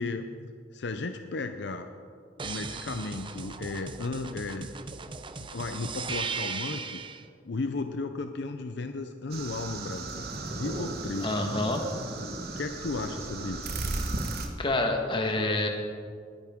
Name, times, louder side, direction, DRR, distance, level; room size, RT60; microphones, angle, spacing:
voice 1, 0.0-1.9 2.4-4.7 5.4-7.0 7.4-10.3 10.5-11.3 12.6-13.7, left 3 dB, 70° left, 7 dB, 0.6 m, -34 dB
sound 1, 2.4-7.2 10.0-11.1, right 5 dB, 25° right, 0.6 m, -38 dB
sound 2, 9.3-14.5, right 2 dB, 60° right, 1.3 m, -35 dB
voice 2, 11.2-11.8 14.6-15.7, left 2 dB, 30° left, 3 dB, 1.4 m, -27 dB
19.0 x 10.5 x 3.7 m, 2.2 s
head